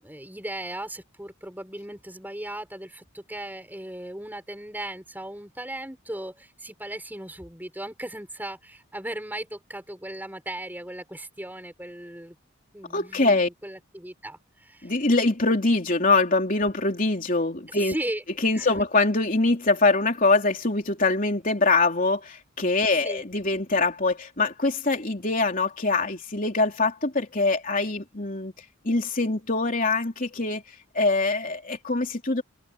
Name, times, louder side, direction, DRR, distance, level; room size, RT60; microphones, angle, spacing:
voice 1, 0.0-12.4 12.7-15.0 17.7-18.2 18.5-18.8 22.8-23.2, right 1 dB, 10° right, 6.5 m, -37 dB
voice 2, 12.9-13.5 14.8-17.9 18.4-28.5 28.8-30.6 30.9-32.4, left 3 dB, 40° left, 3.4 m, -23 dB
head